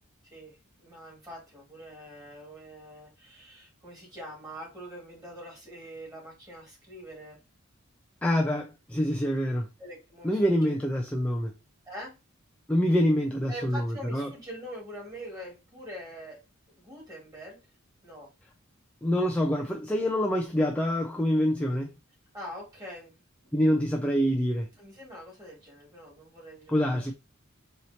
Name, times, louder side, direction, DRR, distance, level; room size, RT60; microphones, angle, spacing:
voice 1, 0.8-7.4 9.8-10.7 11.9-12.1 13.5-16.4 16.7-17.6 18.0-18.3 22.3-23.2 24.8-27.1, equal, 15° right, 1.9 m, -44 dB
voice 2, 8.2-9.7 10.2-11.5 12.7-14.3 19.0-21.9 23.5-24.7 26.7-27.1, equal, 5° left, 0.3 m, -26 dB
4.2 x 2.8 x 2.7 m
head